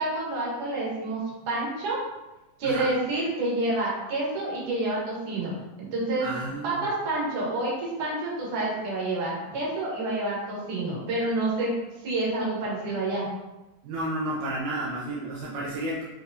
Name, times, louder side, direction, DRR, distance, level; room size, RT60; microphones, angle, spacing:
voice 1, 0.0-2.0 2.6-5.5 5.8-6.3 6.6-11.7 12.0-13.3, right 2 dB, 55° right, -5 dB, 1.9 m, -28 dB
voice 2, 6.2-6.9 13.8-16.0, right 1 dB, 75° right, -6 dB, 2.0 m, -31 dB
6.7 x 2.9 x 2.7 m, 1.0 s
omnidirectional pair, 3.8 m